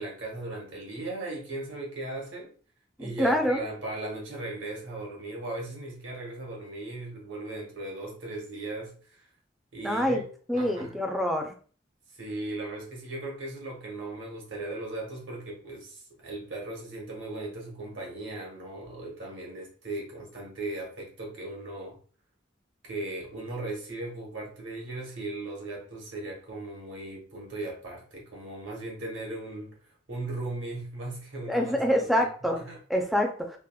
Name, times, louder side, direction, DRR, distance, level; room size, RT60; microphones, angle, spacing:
voice 1, 0.0-2.5 3.0-9.3 9.7-10.3 10.5-11.0 12.1-22.0 22.8-32.3 32.5-32.8, right 2 dB, 85° right, 1.1 m, -37 dB
voice 2, 3.0-3.6 9.8-10.2 10.5-11.5 31.5-32.6 32.9-33.6, equal, ahead, 0.3 m, -26 dB
3.4 x 2.0 x 2.3 m
head